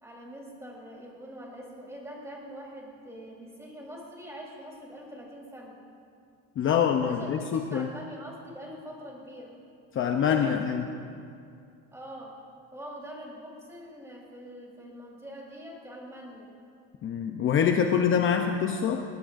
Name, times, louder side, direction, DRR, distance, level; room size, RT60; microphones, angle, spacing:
voice 1, 0.0-5.8 7.0-9.5 10.2-10.5 11.9-12.3 12.7-16.5, equal, 10° right, -3 dB, 3.8 m, -43 dB
voice 2, 6.6-7.9 9.9-10.8 17.0-19.0, left 7 dB, 35° left, 4 dB, 0.7 m, -25 dB
21.0 x 18.0 x 2.6 m, 2.5 s
cardioid pair, 140°, 34 cm